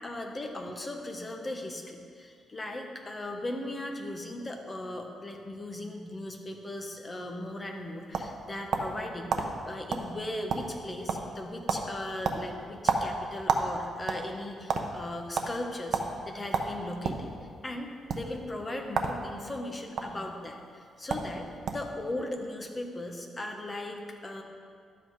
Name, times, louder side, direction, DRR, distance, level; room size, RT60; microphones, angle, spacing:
voice 1, 0.0-16.0 16.2-17.3 17.6-21.5 21.7-24.4, left 1 dB, 20° left, 2 dB, 1.0 m, -38 dB
sound 1, 7.6-9.0 9.3-9.5 9.9-10.1 10.3-10.8 11.1-11.4 11.7-11.9 12.2-13.7 14.0-14.8 15.3-15.5 15.9-16.1 16.5-17.2 18.0-18.2 18.9-19.2 19.5-20.0 20.8-20.9 21.1-21.3 21.7-21.9, right 5 dB, 60° right, 0.8 m, -29 dB
11.5 x 7.9 x 4.7 m, 2.2 s
cardioid pair, 145°, 0 cm